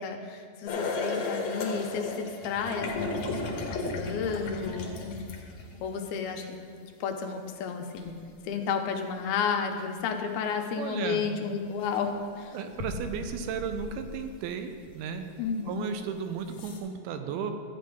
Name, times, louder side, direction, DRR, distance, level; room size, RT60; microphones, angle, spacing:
voice 1, 0.0-5.2 5.8-6.6 7.0-8.1 8.4-12.6 15.4-15.9, left 6 dB, 90° left, 4 dB, 2.6 m, -32 dB
sound 1, 0.7-5.9 8.0-8.1 10.9-11.0 11.8-12.0 12.7-14.4 14.9-15.0 15.8-15.9 16.5-16.8, left 3 dB, 70° left, 1.8 m, -35 dB
voice 2, 10.8-11.3 12.5-15.2 15.7-17.5, right 6 dB, 80° right, 7 dB, 2.5 m, -34 dB
13.0 x 8.6 x 3.7 m, 2.1 s
omnidirectional pair, 4.4 m